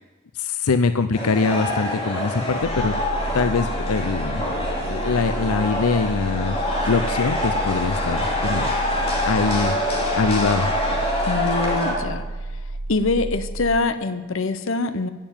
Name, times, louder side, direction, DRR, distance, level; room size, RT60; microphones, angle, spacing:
voice 1, 0.3-2.9 3.3-4.4 4.9-8.8 9.2-9.7 10.2-10.7, left 4 dB, 90° left, 11 dB, 0.6 m, -23 dB
sound 1, 1.1-11.9, left 1 dB, 25° left, 2.8 m, -25 dB
sound 2, 2.6-13.8, right 1 dB, 75° right, 0.8 m, -31 dB
voice 2, 11.3-12.2 12.9-15.1, left 3 dB, 65° left, 11 dB, 0.9 m, -24 dB
15.0 x 7.0 x 8.9 m, 1.3 s
head